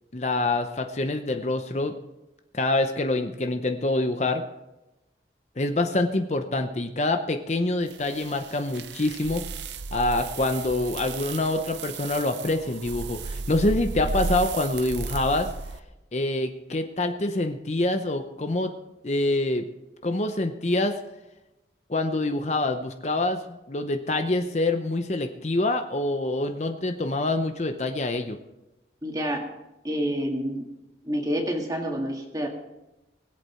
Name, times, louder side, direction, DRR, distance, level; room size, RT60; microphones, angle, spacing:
voice 1, 0.1-2.0 2.5-4.4 5.6-9.4 9.9-15.5 16.1-18.7 19.0-19.7 20.0-21.0 21.9-28.4, left 2 dB, 40° left, 7 dB, 0.7 m, -26 dB
sound 1, 7.9-15.8, right 4 dB, 80° right, 0.7 m, -34 dB
voice 2, 29.0-29.4 29.8-30.6 31.0-32.5, equal, 20° right, 1 dB, 2.0 m, -28 dB
21.0 x 8.2 x 4.4 m, 0.98 s
head